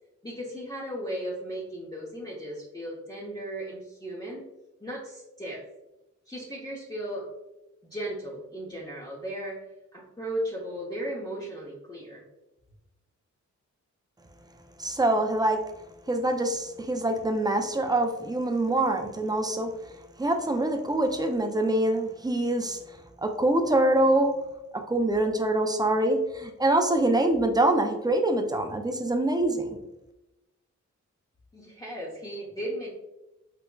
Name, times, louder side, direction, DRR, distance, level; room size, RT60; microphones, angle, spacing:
voice 1, 0.2-4.5 4.8-5.6 6.3-7.3 7.8-9.6 9.9-12.2 31.5-32.9, right 1 dB, 15° left, -6 dB, 0.7 m, -36 dB
voice 2, 14.8-15.6 16.1-19.7 20.2-24.3 24.7-29.8, right 1 dB, 15° right, 5 dB, 0.4 m, -25 dB
5.0 x 2.1 x 2.2 m, 0.96 s
cardioid pair, 75°, 29 cm